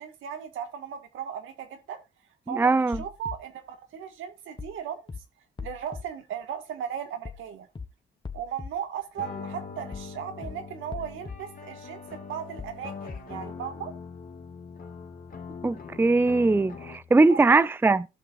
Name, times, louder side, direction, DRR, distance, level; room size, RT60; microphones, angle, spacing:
voice 1, 0.0-2.0 2.5-5.2 5.6-7.7 8.3-14.0 17.3-17.5, right 8 dB, 85° right, 1.8 m, -37 dB
voice 2, 2.5-3.0 15.6-18.1, right 3 dB, 10° right, 0.5 m, -21 dB
sound 1, 2.9-3.4 4.6-4.8 5.1-5.2 5.6-6.0 7.3-7.5 7.8-7.9 8.2-8.7 9.9-10.1 10.4-10.5 10.9-11.4 12.6-12.8 13.1-13.2, left 5 dB, 25° left, 1.1 m, -38 dB
sound 2, 9.2-17.2, left 5 dB, 45° left, 1.9 m, -42 dB
16.0 x 5.9 x 2.6 m
cardioid pair, 90°, 20 cm